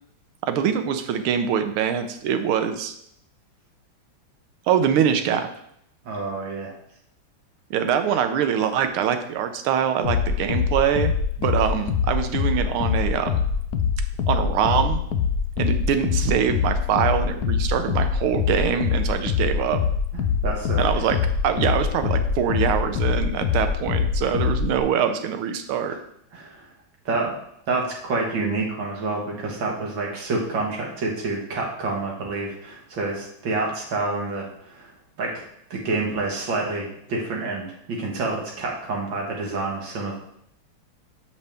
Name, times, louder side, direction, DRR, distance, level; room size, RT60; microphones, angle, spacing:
voice 1, 0.5-2.9 4.7-5.5 7.7-11.1 11.4-13.4 14.3-15.0 15.6-19.8 20.8-21.2 21.4-26.0, right 8 dB, 85° right, 8 dB, 1.6 m, -23 dB
voice 2, 6.1-6.7 20.1-20.8 25.9-26.0 26.3-26.6 27.1-27.3 27.7-34.5 34.8-34.9 35.2-35.4 35.7-40.2, right 3 dB, 65° right, -1 dB, 2.1 m, -28 dB
sound 1, 10.0-24.8, left 6 dB, 85° left, 0.8 m, -24 dB
7.2 x 5.5 x 3.4 m, 0.72 s
omnidirectional pair, 2.3 m